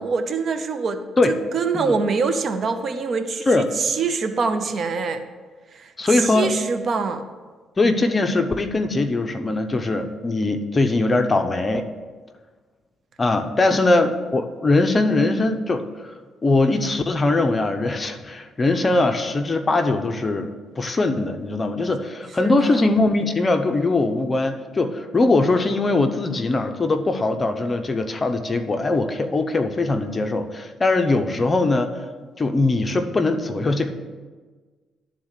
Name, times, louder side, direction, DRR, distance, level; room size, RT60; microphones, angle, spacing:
voice 1, 0.0-5.2 5.7-7.2 13.7-13.8 22.4-22.9, right 4 dB, 50° right, 9 dB, 0.7 m, -25 dB
voice 2, 6.0-6.5 7.8-11.9 13.2-16.1 16.4-31.9 32.4-33.9, left 2 dB, 30° left, 7 dB, 0.7 m, -21 dB
11.5 x 4.0 x 6.6 m, 1.4 s
cardioid pair, 90°, 0 cm